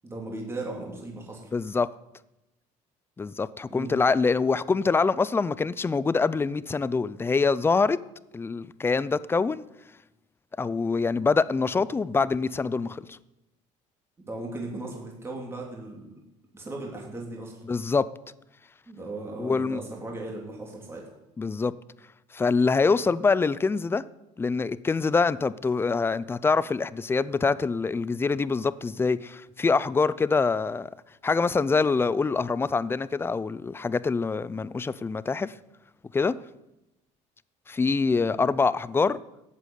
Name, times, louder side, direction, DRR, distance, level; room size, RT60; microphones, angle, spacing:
voice 1, 0.0-1.5 3.7-4.0 14.2-16.1 16.5-17.5 18.9-21.1 38.2-38.4, right 2 dB, 15° right, 3.5 m, -37 dB
voice 2, 1.5-1.9 3.2-8.0 8.3-9.6 10.6-13.2 17.7-18.1 19.4-19.8 21.4-21.7 22.3-24.0 24.4-30.9 31.2-35.5 36.1-36.4 37.7-39.2, left 4 dB, 15° left, 0.5 m, -25 dB
14.0 x 8.4 x 9.4 m
cardioid pair, 135°, 14 cm